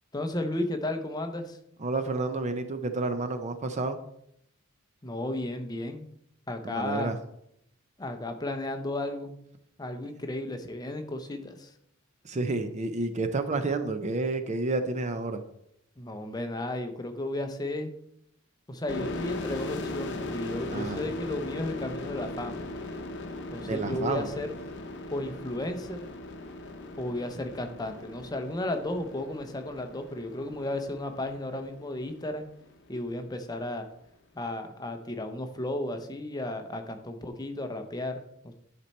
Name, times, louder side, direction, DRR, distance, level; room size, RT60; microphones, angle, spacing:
voice 1, 0.1-1.6 5.0-6.1 6.5-7.2 8.0-9.4 9.8-11.7 16.0-17.9 18.7-22.6 23.5-24.6 25.1-26.1 27.0-32.5 32.9-33.9 34.3-38.5, left 1 dB, 20° left, 6 dB, 0.7 m, -34 dB
voice 2, 1.8-4.0 6.6-7.2 12.2-15.4 20.7-21.0 23.6-24.3, right 3 dB, 35° right, 8 dB, 0.5 m, -30 dB
sound 1, 18.9-32.3, left 2 dB, 55° left, 0.8 m, -39 dB
10.5 x 4.4 x 4.1 m, 0.75 s
head